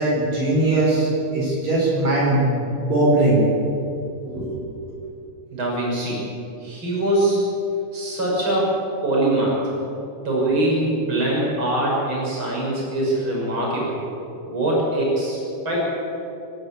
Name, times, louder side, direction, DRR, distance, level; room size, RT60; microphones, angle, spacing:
voice 1, 0.0-3.4 4.3-5.0, right 2 dB, 60° right, -5 dB, 6.3 m, -20 dB
voice 2, 5.5-6.2 6.6-7.4 7.9-8.8 9.0-9.6 10.2-14.0 14.5-15.4 15.6-15.9, right 1 dB, 40° right, -4 dB, 6.6 m, -22 dB
27.0 x 12.0 x 8.6 m, 2.8 s
omnidirectional pair, 3.5 m